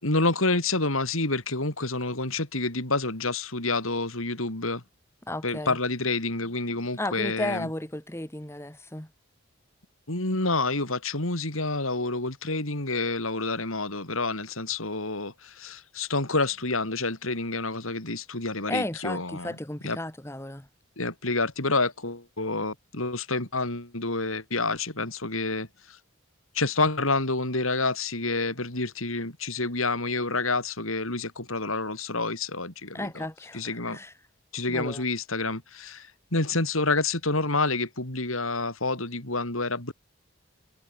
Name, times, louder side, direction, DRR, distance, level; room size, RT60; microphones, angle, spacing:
voice 1, 0.0-4.8 5.4-7.7 10.1-19.6 19.8-20.0 21.0-26.0 26.5-33.3 33.5-34.0 34.5-39.9, left 3 dB, 80° left, 4.9 m, -28 dB
voice 2, 5.3-5.8 7.0-9.1 18.7-20.7 32.9-34.1 34.7-35.0, left 1 dB, 10° left, 1.6 m, -34 dB
head